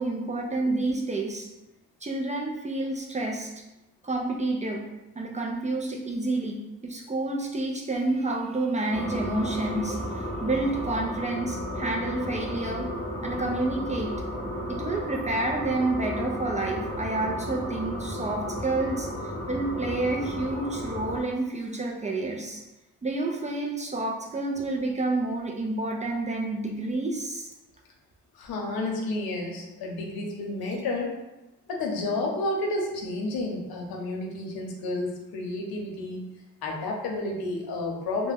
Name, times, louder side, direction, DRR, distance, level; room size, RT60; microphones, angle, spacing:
voice 1, 0.0-1.5 2.0-3.5 4.0-4.8 5.2-12.9 13.2-14.1 14.7-22.6 23.0-27.5, right 2 dB, 20° right, 0 dB, 0.3 m, -29 dB
sound 1, 8.9-21.2, equal, 10° left, 0.8 m, -33 dB
voice 2, 28.3-31.1 31.7-36.2 36.6-38.3, left 2 dB, 85° left, -1 dB, 0.7 m, -31 dB
2.2 x 2.1 x 3.3 m, 1.0 s
cardioid pair, 80°, 35 cm